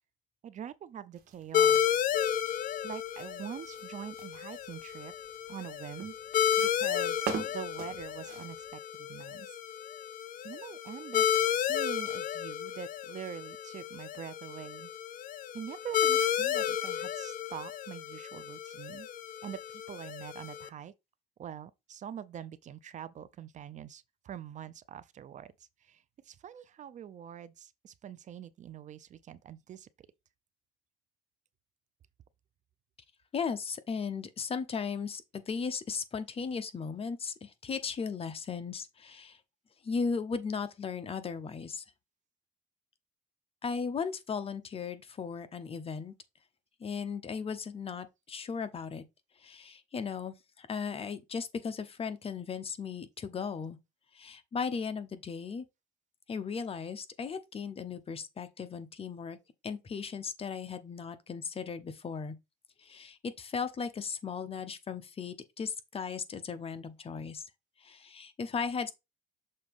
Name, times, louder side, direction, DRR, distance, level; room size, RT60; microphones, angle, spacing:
voice 1, 0.4-1.8 2.8-5.1 5.5-6.2 6.6-9.6 10.4-14.9 15.5-19.1 19.4-20.9 21.4-25.5 25.8-29.9, right 9 dB, 45° right, 0.6 m, -44 dB
sound 1, 1.1-8.8, right 8 dB, 65° right, 1.6 m, -44 dB
sound 2, 1.5-20.7, left 9 dB, 55° left, 0.6 m, -32 dB
voice 2, 33.3-39.4 39.8-41.8 43.6-46.1 46.8-49.0 49.4-53.8 54.1-55.6 56.3-59.4 59.6-62.4 62.8-67.4 67.8-68.9, left 5 dB, 35° left, 0.9 m, -36 dB
6.6 x 2.9 x 5.4 m
cardioid pair, 110°, 17 cm